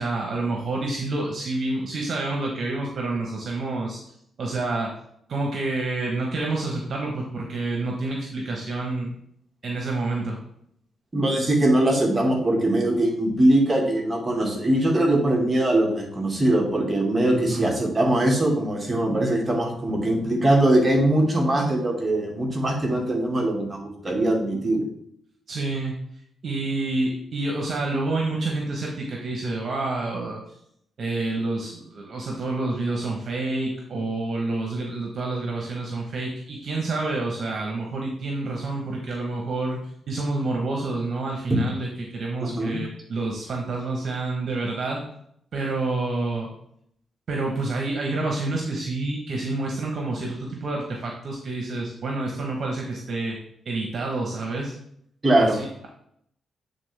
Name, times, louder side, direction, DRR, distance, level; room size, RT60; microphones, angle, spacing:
voice 1, 0.0-4.0 4.4-4.9 5.3-9.1 9.6-10.4 17.3-17.7 25.5-26.0 26.4-30.4 31.0-39.8 40.1-45.0 45.5-46.5 47.3-53.4 53.6-54.7 55.3-55.9, right 2 dB, 60° right, 0 dB, 1.3 m, -28 dB
voice 2, 11.1-24.9 42.4-42.8 55.2-55.6, right 1 dB, 25° right, 0 dB, 2.1 m, -21 dB
8.6 x 3.9 x 3.5 m, 0.69 s
supercardioid pair, 60°, 0 cm